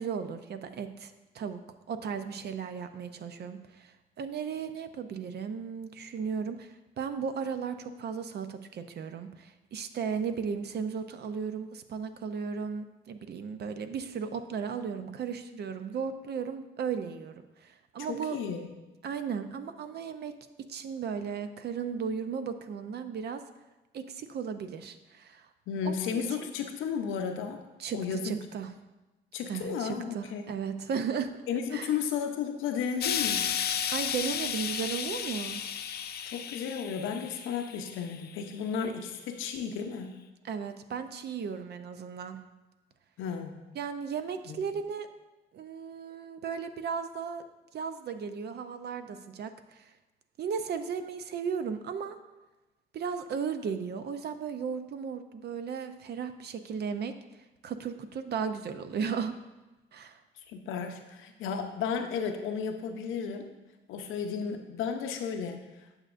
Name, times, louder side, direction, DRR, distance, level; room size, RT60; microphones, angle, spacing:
voice 1, 0.0-1.6 1.9-18.4 19.0-20.3 20.7-23.4 23.9-25.4 25.8-26.2 27.8-28.7 29.5-31.3 31.7-31.9 33.9-35.6 40.4-42.4 43.7-45.1 45.5-47.4 47.7-49.9 50.4-52.2 52.9-57.1 57.6-59.3 59.9-60.2, right 6 dB, 55° right, 10 dB, 0.6 m, -35 dB
voice 2, 18.1-18.7 25.7-27.6 27.9-28.4 29.3-30.5 31.5-33.5 36.2-40.1 43.2-43.6 44.5-44.6 60.5-63.5 63.9-65.6, left 6 dB, 90° left, 5 dB, 0.7 m, -33 dB
Explosion, 33.0-38.3 39.1-39.2, left 9 dB, 55° left, 0.5 m, -33 dB
8.8 x 6.3 x 2.5 m, 1.1 s
cardioid pair, 90°, 20 cm